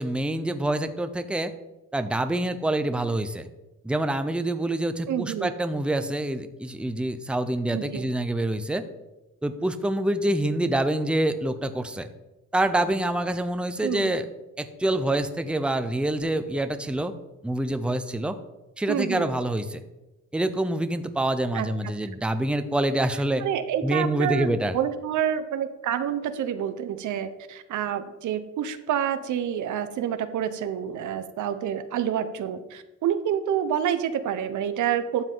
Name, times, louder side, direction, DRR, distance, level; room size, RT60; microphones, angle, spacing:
voice 1, 0.0-1.5 1.9-3.5 3.8-8.9 9.4-12.1 12.5-14.3 14.6-17.1 17.4-18.4 18.8-19.8 20.3-23.5 23.8-24.8, right 1 dB, 5° right, 9 dB, 0.7 m, -26 dB
voice 2, 5.1-5.5 7.7-8.0 13.8-14.1 18.9-19.3 21.5-21.7 23.4-35.2, right 9 dB, 75° right, 10 dB, 0.9 m, -28 dB
12.5 x 7.2 x 3.9 m, 1.0 s
cardioid pair, 90°, 30 cm